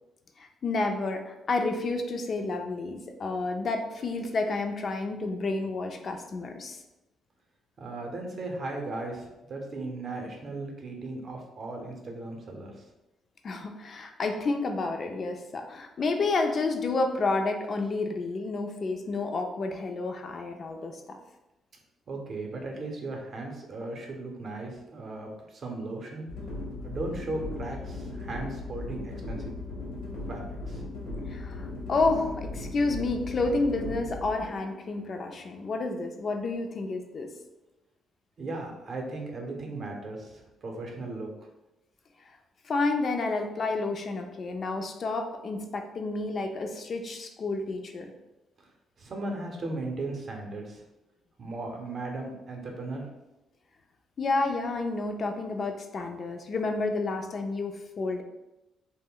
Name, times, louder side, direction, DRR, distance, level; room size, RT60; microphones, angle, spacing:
voice 1, 0.4-6.8 13.4-21.2 31.3-37.3 42.6-48.1 54.2-58.2, left 3 dB, 45° left, 5 dB, 0.3 m, -30 dB
voice 2, 7.8-12.8 22.1-26.3 26.8-29.5 30.3-30.8 38.4-41.3 48.6-48.7 49.0-50.8 51.4-53.1, right 2 dB, 50° right, 2 dB, 0.6 m, -37 dB
sound 1, 26.3-36.3, left 2 dB, 80° left, 0.9 m, -38 dB
2.2 x 2.1 x 3.7 m, 0.97 s
cardioid pair, 90°, 0 cm